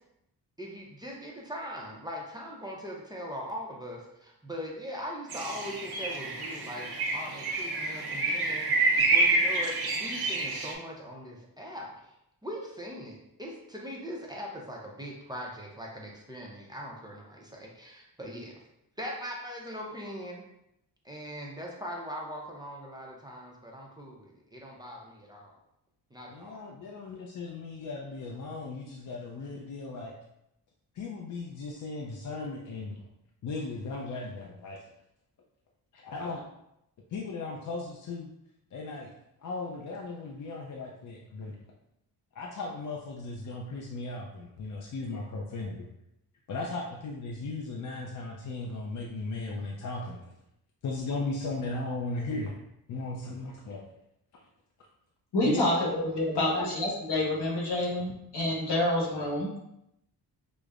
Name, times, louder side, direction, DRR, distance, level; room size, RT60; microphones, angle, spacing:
voice 1, 0.6-11.9 12.4-18.5 19.0-20.4 21.0-25.6 26.1-26.7, equal, 10° right, -2 dB, 0.5 m, -41 dB
sound 1, 5.3-10.7, right 3 dB, 65° right, 0.8 m, -28 dB
voice 2, 26.3-30.1 30.9-33.0 33.4-34.8 35.9-36.4 37.1-38.3 38.7-39.1 39.4-41.6 42.3-45.9 46.5-50.2 50.8-52.6 52.9-53.8 54.3-54.4 55.4-55.8 56.3-56.6, left 3 dB, 50° left, -1 dB, 0.5 m, -36 dB
voice 3, 55.3-55.7 56.1-59.6, left 1 dB, 80° left, -3 dB, 1.2 m, -28 dB
5.0 x 2.0 x 2.4 m, 0.82 s
cardioid pair, 100°, 40 cm